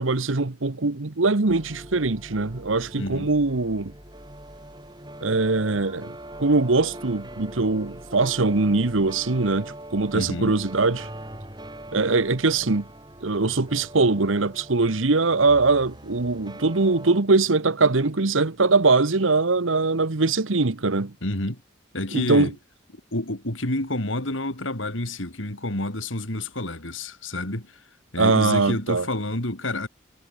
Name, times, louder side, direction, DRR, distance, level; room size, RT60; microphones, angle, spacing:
voice 1, 0.0-3.9 5.2-6.1 6.4-11.1 11.9-12.9 13.2-21.1 22.1-22.5 28.2-29.1, right 3 dB, 85° right, 1.2 m, -22 dB
sound 1, 1.5-17.2, right 1 dB, 20° right, 5.6 m, -42 dB
voice 2, 3.0-3.3 10.1-10.6 21.2-21.6 21.9-22.5 23.1-27.8 28.1-29.9, left 1 dB, 80° left, 4.2 m, -29 dB
head